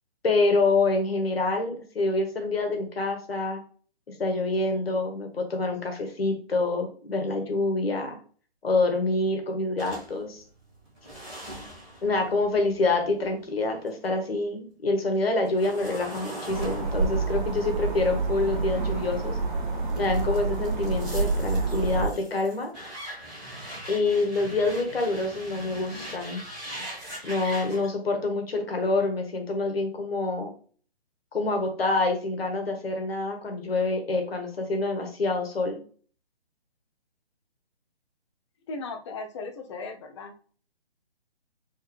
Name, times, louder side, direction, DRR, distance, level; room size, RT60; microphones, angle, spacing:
voice 1, 0.2-3.6 4.2-8.2 8.6-10.4 12.0-19.4 19.9-22.7 23.9-26.4 27.2-30.5 31.3-35.8, left 2 dB, 65° left, 4 dB, 1.6 m, -26 dB
sound 1, 9.8-14.0 14.4-19.3 19.9-27.9, right 1 dB, ahead, 0.4 m, -41 dB
sound 2, 16.5-22.1, right 3 dB, 50° right, 1.8 m, -28 dB
voice 2, 38.7-40.3, left 3 dB, 30° left, 5 dB, 0.7 m, -37 dB
4.1 x 3.9 x 3.3 m, 0.43 s
figure-of-eight pair, 145°, 32 cm